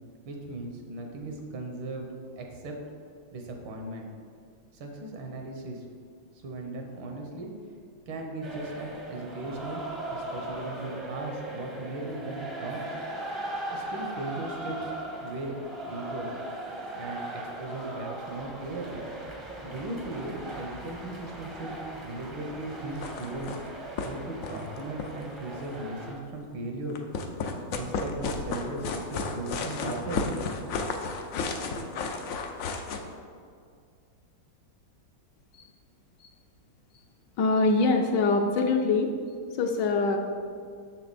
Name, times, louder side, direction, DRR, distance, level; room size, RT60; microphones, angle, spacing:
voice 1, 0.3-2.1 2.4-2.7 3.3-4.1 4.7-5.8 6.4-7.5 8.1-9.8 10.1-12.9 13.7-14.9 15.2-15.5 15.8-16.3 16.9-19.0 19.6-23.5 24.0-27.0 27.7-30.3, right 2 dB, 80° right, 2 dB, 1.8 m, -37 dB
sound 1, 8.4-26.1, right 1 dB, 30° right, 0.5 m, -39 dB
sound 2, 22.9-23.7 24.0-24.1 24.4-25.7 26.9-33.0, left 4 dB, 90° left, 0.7 m, -33 dB
voice 2, 37.4-39.1 39.6-40.2, left 3 dB, 75° left, 4 dB, 1.1 m, -23 dB
6.7 x 6.6 x 4.1 m, 2.2 s
omnidirectional pair, 2.2 m